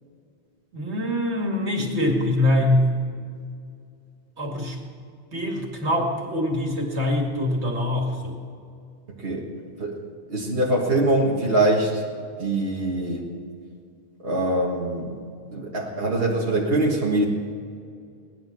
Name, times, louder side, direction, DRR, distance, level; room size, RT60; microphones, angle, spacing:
voice 1, 0.7-3.0 4.4-4.8 5.3-8.3, left 1 dB, 80° right, 1 dB, 2.7 m, -24 dB
voice 2, 9.1-12.0 12.4-13.3 14.2-15.2 15.5-17.2, right 1 dB, 60° right, -3 dB, 1.9 m, -23 dB
19.0 x 11.5 x 6.1 m, 2.4 s
omnidirectional pair, 1.1 m